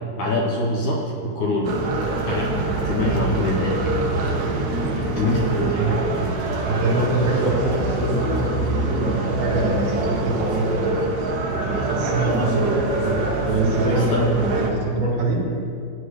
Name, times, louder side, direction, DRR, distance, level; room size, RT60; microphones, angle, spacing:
voice 1, 0.2-1.7 2.3-3.8 4.1-4.2 5.2-5.8 13.8-14.2, left 1 dB, 70° left, -3 dB, 2.1 m, -24 dB
sound 1, 1.6-14.7, right 2 dB, 65° right, 2.6 m, -24 dB
voice 2, 6.6-11.0 11.7-15.4, right 2 dB, 80° right, -4 dB, 3.9 m, -24 dB
15.0 x 10.0 x 3.2 m, 2.5 s
omnidirectional pair, 4.3 m